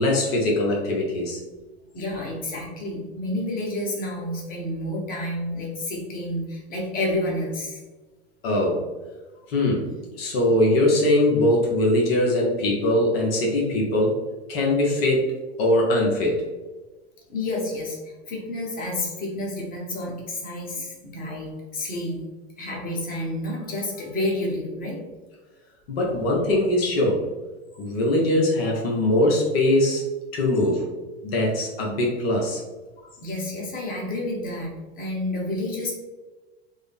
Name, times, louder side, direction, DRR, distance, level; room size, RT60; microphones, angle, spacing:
voice 1, 0.0-1.4 8.4-8.8 9.5-14.1 14.5-15.3 15.6-16.4 25.9-27.2 27.8-30.0 30.3-30.9 31.2-32.6, left 1 dB, 60° left, -2 dB, 1.0 m, -21 dB
voice 2, 1.9-7.8 17.3-22.2 22.6-25.0 26.1-26.3 33.2-35.9, left 1 dB, 25° left, -2 dB, 1.1 m, -30 dB
3.6 x 2.1 x 3.4 m, 1.2 s
hypercardioid pair, 100°, 33 cm